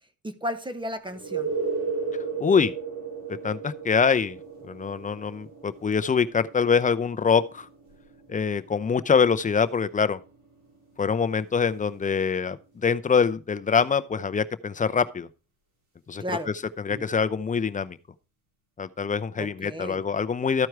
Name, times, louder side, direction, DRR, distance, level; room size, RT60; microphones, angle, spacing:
voice 1, 0.2-1.5 16.2-16.5 19.4-20.1, equal, 15° right, 1.1 m, -33 dB
sound 1, 1.1-12.6 16.9-17.0, right 5 dB, 75° right, 5.6 m, -36 dB
voice 2, 2.4-2.7 3.3-4.4 4.6-7.7 8.3-10.2 11.0-15.3 16.1-16.4 16.8-18.0 18.8-20.7, left 6 dB, 25° left, 0.6 m, -24 dB
13.5 x 4.6 x 4.6 m
cardioid pair, 90°, 30 cm